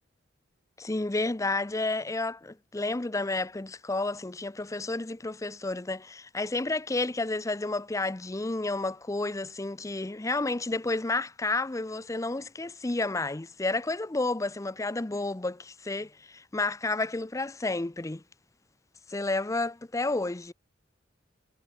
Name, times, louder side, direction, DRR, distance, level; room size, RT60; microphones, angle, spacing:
voice 1, 0.8-18.2 19.1-20.5, left 2 dB, 15° left, 0.5 m, -31 dB
head